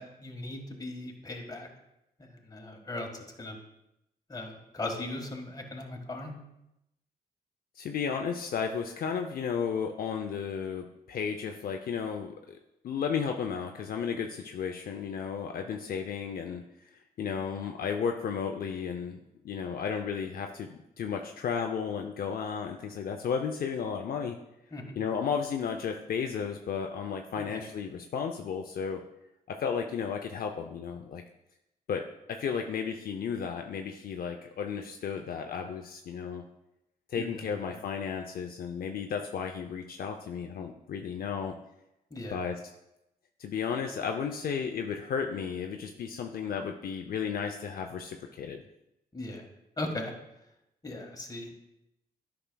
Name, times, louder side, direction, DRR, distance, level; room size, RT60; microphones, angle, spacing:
voice 1, 0.0-1.7 2.2-3.6 4.3-6.3 24.7-24.9 27.4-27.6 37.2-37.8 42.1-42.4 49.1-49.5 49.8-50.1 50.8-51.8, left 2 dB, 25° left, 2 dB, 1.5 m, -38 dB
voice 2, 7.8-12.6 12.8-16.6 17.2-19.2 19.4-20.7 21.0-24.4 25.0-29.0 29.5-31.2 31.9-36.4 37.1-41.6 42.3-42.6 43.4-48.6, left 6 dB, 65° left, 4 dB, 0.5 m, -33 dB
10.0 x 5.9 x 2.2 m, 0.87 s
cardioid pair, 70°, 17 cm